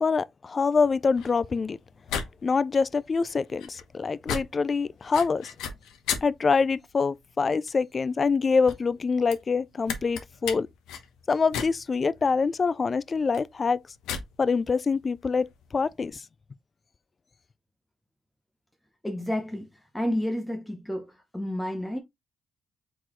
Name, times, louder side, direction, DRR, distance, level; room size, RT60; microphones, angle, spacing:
voice 1, 0.0-1.8 2.4-5.5 6.2-10.7 11.3-13.8 14.4-16.2, left 5 dB, 35° left, 0.3 m, -25 dB
sound 1, 0.8-16.1, left 7 dB, 90° left, 1.0 m, -38 dB
voice 2, 19.0-19.7 19.9-22.0, equal, 5° left, 0.8 m, -30 dB
4.6 x 3.9 x 3.0 m
cardioid pair, 90°, 0 cm